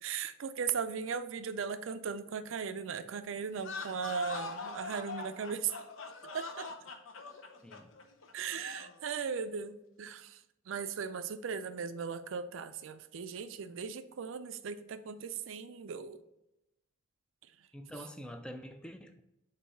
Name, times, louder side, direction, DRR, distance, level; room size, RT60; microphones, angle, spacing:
voice 1, 0.0-5.7 6.3-6.7 8.3-10.4 10.7-16.2, right 6 dB, 70° right, 12 dB, 0.4 m, -38 dB
sound 1, 3.5-9.0, left 4 dB, 80° left, 0.7 m, -43 dB
voice 2, 17.7-19.2, equal, 5° left, 6 dB, 0.4 m, -46 dB
7.0 x 2.7 x 5.7 m, 0.91 s
head